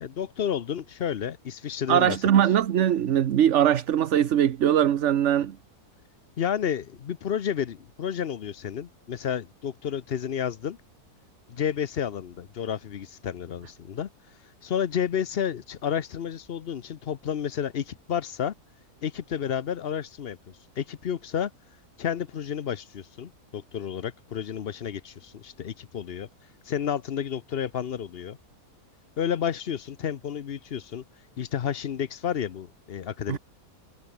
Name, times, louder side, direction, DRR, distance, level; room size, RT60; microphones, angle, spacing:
voice 1, 0.0-2.2 6.4-10.8 11.5-14.1 14.6-18.5 19.0-20.4 20.8-21.5 22.0-26.3 26.7-28.4 29.2-31.0 31.4-33.4, left 8 dB, 50° left, 0.8 m, -31 dB
voice 2, 1.9-5.6 33.3-33.4, right 10 dB, 55° right, 1.0 m, -21 dB
omnidirectional pair, 1.6 m